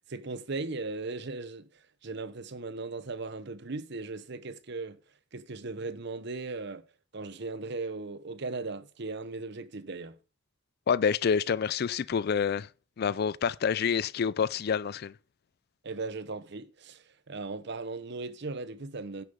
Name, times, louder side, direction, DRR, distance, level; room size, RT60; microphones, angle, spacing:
voice 1, 0.1-5.0 5.3-6.8 7.1-10.2 15.8-19.2, right 3 dB, 60° right, 0.9 m, -38 dB
voice 2, 10.9-12.7 13.0-15.1, left 6 dB, 55° left, 0.4 m, -27 dB
10.5 x 6.8 x 5.4 m
head